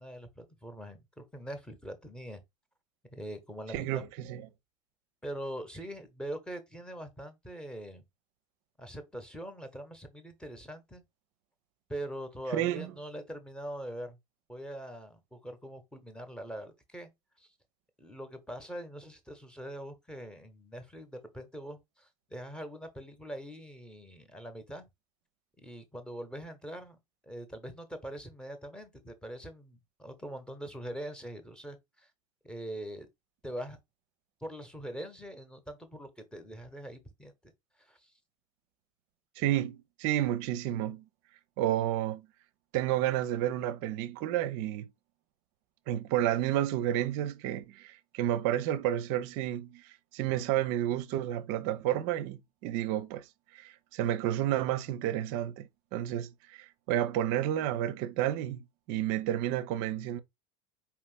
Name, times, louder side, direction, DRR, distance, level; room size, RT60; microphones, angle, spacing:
voice 1, 0.0-2.4 3.1-3.9 5.2-8.0 8.8-11.0 11.9-14.2 14.5-17.1 17.4-17.5 18.0-24.9 25.6-27.0 27.3-32.1 32.4-33.1 33.4-33.8 34.4-37.5 37.8-38.1, right 1 dB, 5° left, 1.0 m, -43 dB
voice 2, 3.7-4.5 12.5-12.9 39.4-41.0 41.6-42.3 42.7-44.9 45.9-53.2 53.5-60.2, right 12 dB, 50° right, 0.5 m, -31 dB
5.0 x 2.9 x 3.3 m
figure-of-eight pair, 70°, 17 cm